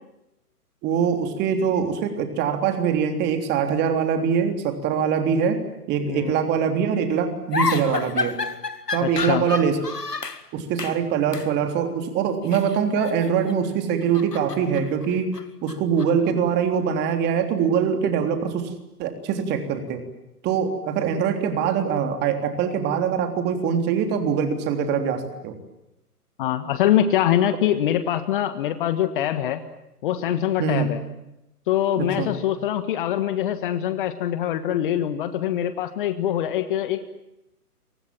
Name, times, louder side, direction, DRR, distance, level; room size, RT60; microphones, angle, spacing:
voice 1, 0.8-5.6 5.9-8.4 8.9-9.8 10.5-15.4 15.6-18.7 19.0-20.0 20.4-25.6 30.6-30.9 32.0-32.3, right 7 dB, 20° right, 7 dB, 3.5 m, -23 dB
sound 1, 7.5-10.4 10.8-11.0 11.3-11.5 12.4-13.6 13.9-16.3, left 4 dB, 85° left, 2.1 m, -30 dB
voice 2, 9.0-9.4 25.0-25.2 26.4-29.6 30.0-31.0 31.7-37.0, left 11 dB, 35° left, 11 dB, 1.6 m, -24 dB
29.0 x 24.5 x 7.6 m, 0.90 s
figure-of-eight pair, 130°, 46 cm